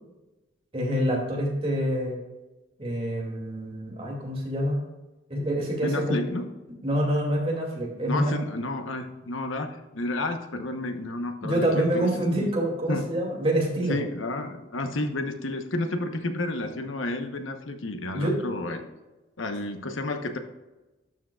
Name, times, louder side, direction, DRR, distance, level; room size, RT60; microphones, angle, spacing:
voice 1, 0.7-2.2 2.8-4.8 5.3-6.2 6.8-8.3 11.4-14.0 18.1-18.4, equal, 30° right, -2 dB, 2.5 m, -26 dB
voice 2, 5.8-6.5 8.1-12.1 12.3-12.5 12.9-13.0 13.9-18.9 19.4-20.4, left 2 dB, 80° left, 6 dB, 1.0 m, -31 dB
12.0 x 7.5 x 2.4 m, 1.1 s
head